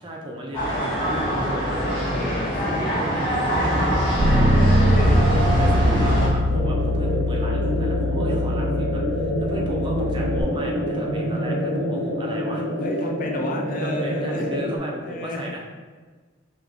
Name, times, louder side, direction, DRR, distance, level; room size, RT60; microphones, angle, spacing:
voice 1, 0.0-4.0 5.2-12.6 13.8-15.6, equal, 25° right, -1 dB, 0.4 m, -34 dB
sound 1, 0.5-6.3, equal, 25° left, 1.5 m, -23 dB
voice 2, 2.1-2.6 4.6-5.3 12.8-14.6 15.0-15.6, left 2 dB, 40° left, 2 dB, 0.4 m, -32 dB
Bass guitar, 4.2-10.4, equal, 55° right, 0.9 m, -22 dB
sound 2, 6.5-14.8, equal, 65° left, 0.9 m, -26 dB
5.0 x 2.9 x 2.5 m, 1.4 s
head